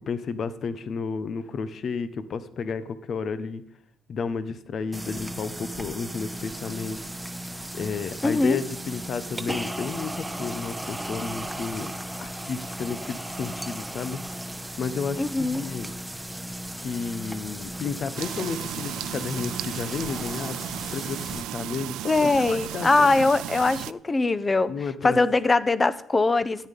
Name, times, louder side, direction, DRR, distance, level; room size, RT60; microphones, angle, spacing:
voice 1, 0.1-3.6 4.1-7.0 7.7-11.9 12.2-14.4 14.8-15.9 16.8-20.6 20.9-23.1 24.7-25.2, left 5 dB, 55° left, 14 dB, 1.0 m, -32 dB
sound 1, 4.9-21.4, right 1 dB, 10° right, 0.9 m, -36 dB
voice 2, 8.2-8.6 15.2-15.6 22.1-24.7 25.0-26.7, left 3 dB, 25° left, 16 dB, 0.9 m, -22 dB
sound 2, 18.2-23.9, right 13 dB, 90° right, 0.4 m, -35 dB
13.5 x 9.5 x 5.4 m, 0.72 s
cardioid pair, 90°, 0 cm